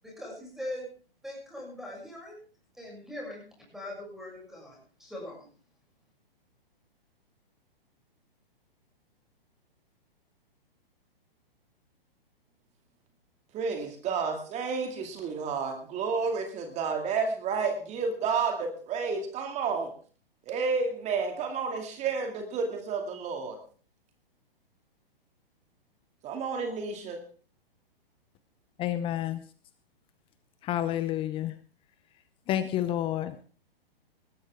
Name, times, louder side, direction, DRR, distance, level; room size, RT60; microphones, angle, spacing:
voice 1, 0.0-0.9 1.2-2.4 2.8-3.4 3.7-5.5, left 1 dB, ahead, -2 dB, 7.0 m, -41 dB
voice 2, 13.5-19.9 20.5-23.6 26.2-27.2, right 5 dB, 25° right, 5 dB, 2.3 m, -31 dB
voice 3, 28.8-29.4 30.6-31.5 32.5-33.5, left 12 dB, 20° left, 14 dB, 0.7 m, -29 dB
20.0 x 13.5 x 3.6 m, 0.40 s
figure-of-eight pair, 120°, 29 cm